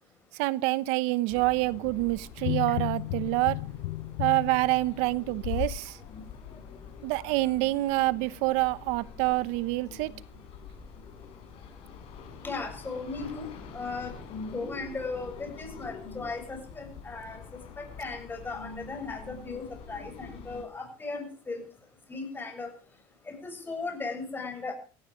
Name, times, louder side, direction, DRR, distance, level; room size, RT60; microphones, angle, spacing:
voice 1, 0.4-3.6 4.2-6.0 7.0-10.1, right 20 dB, 75° right, 0.9 m, -27 dB
sound 1, 1.3-20.6, left 5 dB, 60° left, 6.6 m, -46 dB
sound 2, 2.4-5.8 6.3-6.4, left 18 dB, 80° left, 0.6 m, -33 dB
voice 2, 12.4-13.5 13.7-14.1 14.5-17.4 17.8-21.6 22.1-22.7 23.3-24.7, left 3 dB, 20° left, 7.6 m, -37 dB
16.5 x 14.5 x 5.1 m
supercardioid pair, 120°, 11 cm